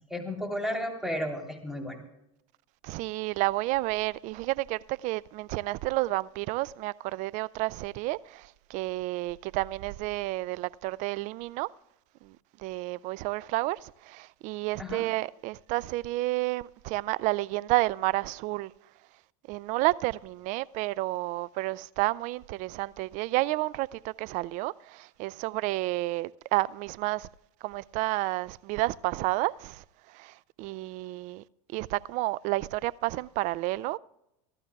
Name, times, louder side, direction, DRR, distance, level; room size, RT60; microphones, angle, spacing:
voice 1, 0.1-2.0 14.8-15.1, equal, 5° right, 3.4 m, -33 dB
voice 2, 2.8-11.7 12.2-12.3 12.6-18.7 19.5-27.3 27.6-29.8 30.1-31.4 31.7-34.0, right 19 dB, 50° right, 0.4 m, -30 dB
27.5 x 12.5 x 2.3 m
supercardioid pair, 120°, 17 cm